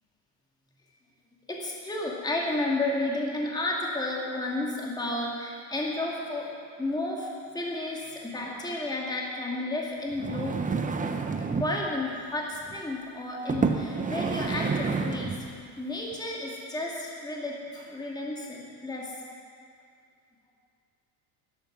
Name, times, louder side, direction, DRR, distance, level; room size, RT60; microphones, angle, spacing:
voice 1, 1.5-6.5 6.8-10.6 11.5-15.5 15.8-19.1, left 2 dB, 10° left, -3 dB, 2.3 m, -32 dB
sound 1, 10.1-11.8 12.6-12.8 13.5-15.5 16.1-16.2, right 4 dB, 15° right, 0.8 m, -29 dB
12.0 x 11.5 x 6.1 m, 2.3 s
supercardioid pair, 105°, 50 cm